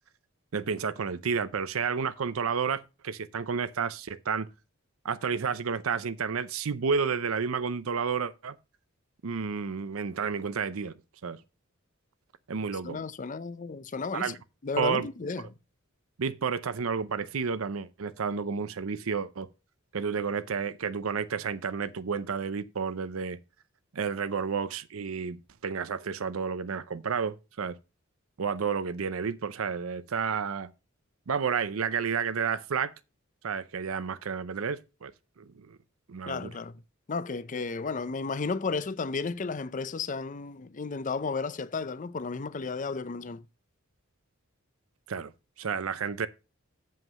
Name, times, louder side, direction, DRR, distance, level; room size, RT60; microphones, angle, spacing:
voice 1, 0.5-4.5 5.0-8.6 9.2-11.0 11.2-11.4 12.5-13.0 14.1-14.3 14.8-15.1 16.2-19.5 19.9-23.4 23.9-27.8 28.4-30.7 31.3-32.9 33.4-35.1 35.4-35.8 36.1-36.5 45.1-45.3 45.6-46.3, right 6 dB, 90° right, 0.6 m, -31 dB
voice 2, 12.8-14.3 14.6-15.5 36.3-36.8 37.1-43.5, left 4 dB, 40° left, 0.5 m, -33 dB
7.4 x 5.5 x 6.3 m
head